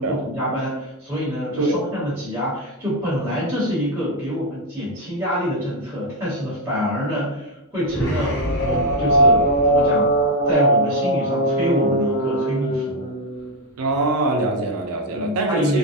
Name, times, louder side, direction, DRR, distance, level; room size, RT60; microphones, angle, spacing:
voice 1, 0.0-10.1 10.4-13.1 15.1-15.8, equal, 15° right, -10 dB, 0.9 m, -26 dB
sound 1, 7.9-13.4, right 1 dB, 60° left, 0.8 m, -20 dB
voice 2, 13.8-15.8, right 2 dB, 80° right, 3 dB, 0.4 m, -23 dB
2.4 x 2.0 x 2.6 m, 0.87 s
head